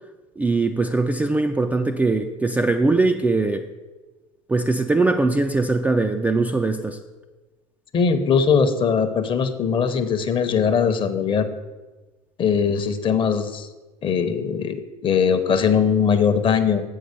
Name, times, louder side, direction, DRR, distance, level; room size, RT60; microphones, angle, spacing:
voice 1, 0.4-3.7 4.5-7.0, right 3 dB, 10° right, 5 dB, 0.3 m, -21 dB
voice 2, 7.9-11.5 12.4-13.7 14.0-16.8, left 6 dB, 30° left, 9 dB, 0.7 m, -20 dB
7.7 x 5.5 x 5.1 m, 1.2 s
figure-of-eight pair, 75°, 18 cm